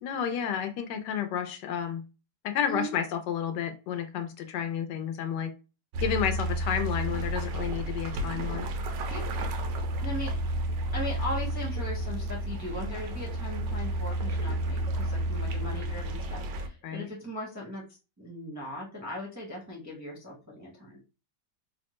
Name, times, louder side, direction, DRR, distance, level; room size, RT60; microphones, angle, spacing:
voice 1, 0.0-2.0 2.4-5.5 6.0-8.7 16.8-17.1, left 8 dB, 80° left, 8 dB, 1.2 m, -31 dB
sound 1, 5.9-16.7, right 1 dB, 80° right, 1.3 m, -31 dB
voice 2, 10.0-10.4 10.9-21.0, equal, 15° right, -3 dB, 0.5 m, -38 dB
3.4 x 2.1 x 3.0 m, 0.30 s
omnidirectional pair, 1.9 m